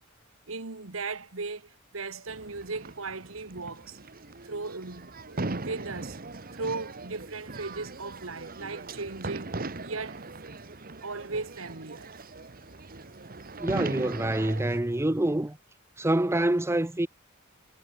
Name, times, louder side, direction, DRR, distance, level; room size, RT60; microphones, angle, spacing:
voice 1, 0.5-4.0 4.4-6.2 6.5-10.6 11.0-12.1, right 3 dB, 70° right, 1.7 m, -37 dB
sound 1, 2.3-14.8, right 2 dB, 45° right, 1.6 m, -39 dB
voice 2, 13.6-15.6 16.0-17.1, right 1 dB, 15° right, 0.7 m, -26 dB
head